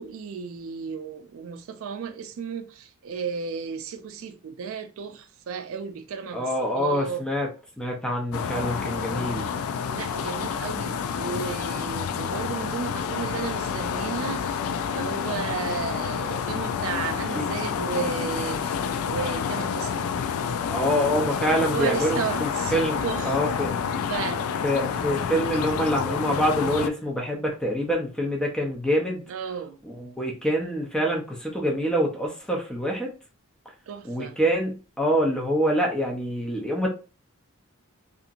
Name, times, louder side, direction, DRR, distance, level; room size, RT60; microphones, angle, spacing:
voice 1, 0.0-7.2 9.8-20.1 20.5-21.0 21.6-22.7 23.0-23.4 24.1-24.4 29.3-29.8 33.9-34.4, right 6 dB, 70° right, 0.3 m, -34 dB
voice 2, 6.3-7.5 7.8-9.5 17.3-17.5 20.7-23.7 24.6-29.2 29.8-33.1 34.0-36.9, equal, 5° left, 0.5 m, -26 dB
sound 1, 8.3-26.9, left 7 dB, 80° left, 0.3 m, -29 dB
2.8 x 2.5 x 2.4 m
head